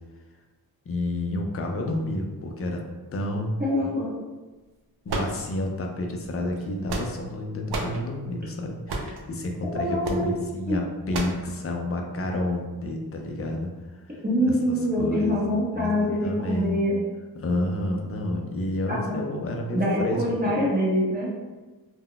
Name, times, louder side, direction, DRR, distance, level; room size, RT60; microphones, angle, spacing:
voice 1, 0.9-2.8 3.1-3.9 5.1-15.4 15.7-16.8 17.4-20.5, left 1 dB, 40° left, 2 dB, 0.4 m, -30 dB
voice 2, 3.6-4.1 9.7-10.3 10.7-10.8 14.2-16.9 18.9-19.2 19.7-21.3, equal, 25° right, -7 dB, 0.7 m, -25 dB
sound 1, 5.1-5.8 6.6-7.3 7.7-8.0 8.9-9.2 10.0-10.3 11.1-11.4, right 2 dB, 80° right, 0.5 m, -31 dB
2.2 x 2.0 x 3.8 m, 1.2 s
wide cardioid pair, 135°, 38 cm